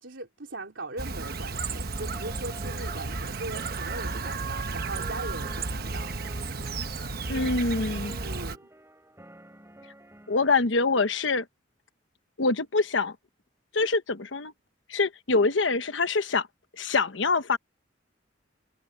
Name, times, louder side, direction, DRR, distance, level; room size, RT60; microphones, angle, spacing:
voice 1, 0.0-6.1 8.2-8.7, right 2 dB, 80° right, 3.4 m, -39 dB
Chirp tweet, 1.0-8.6, right 3 dB, 55° right, 1.1 m, -33 dB
sound 1, 1.9-10.5, right 1 dB, 15° right, 5.8 m, -50 dB
voice 2, 7.3-8.2 10.3-11.4 12.4-13.1 13.7-14.5 14.9-16.5 16.8-17.6, left 3 dB, 80° left, 1.1 m, -25 dB
head